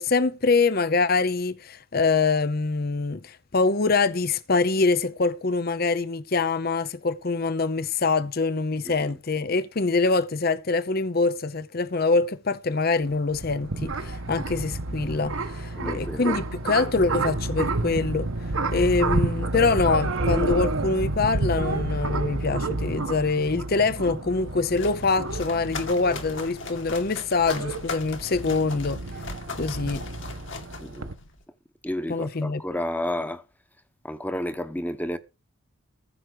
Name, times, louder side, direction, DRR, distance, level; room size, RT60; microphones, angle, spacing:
voice 1, 0.0-18.3 18.7-29.0 29.6-30.0 32.1-32.6, left 3 dB, 45° left, 0.7 m, -24 dB
voice 2, 8.8-9.2 15.8-16.4 30.8-31.1 31.8-33.4 34.0-35.2, left 1 dB, 10° left, 1.0 m, -31 dB
sound 1, 13.0-31.1, right 2 dB, 70° right, 1.3 m, -30 dB
sound 2, 24.4-31.4, left 3 dB, 60° left, 2.4 m, -39 dB
15.0 x 6.0 x 6.7 m
head